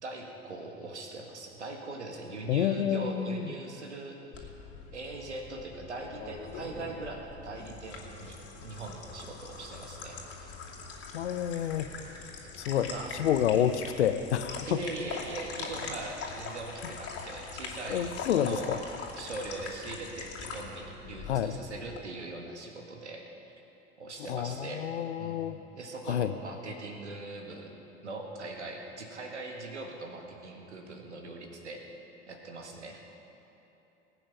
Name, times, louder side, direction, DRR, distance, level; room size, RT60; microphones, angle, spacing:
voice 1, 0.0-4.5 4.9-10.6 12.8-13.1 14.7-18.8 19.1-23.2 24.0-24.9 25.2-27.7 28.0-31.8 32.3-33.0, right 2 dB, 85° right, 2 dB, 1.8 m, -41 dB
voice 2, 2.5-3.5 11.1-11.9 12.6-14.8 17.9-18.8 21.3-21.6 24.3-25.6 26.1-26.3, left 9 dB, 75° left, 12 dB, 0.7 m, -29 dB
sound 1, 4.3-22.0, left 4 dB, 45° left, 2.5 m, -42 dB
19.5 x 8.8 x 5.9 m, 3.0 s
figure-of-eight pair, 70°, 34 cm